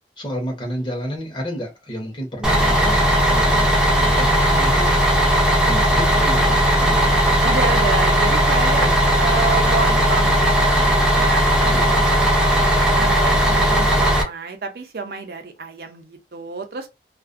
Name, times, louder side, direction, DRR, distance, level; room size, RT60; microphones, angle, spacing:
voice 1, 0.2-4.9 5.7-7.1 8.8-8.9 11.5-12.1, equal, 25° left, 0.8 m, -31 dB
Bus, 2.4-14.2, equal, 5° right, 0.4 m, -17 dB
voice 2, 7.4-8.9 9.2-12.3 13.0-16.9, right 4 dB, 60° right, 0.5 m, -29 dB
2.4 x 2.1 x 2.4 m
head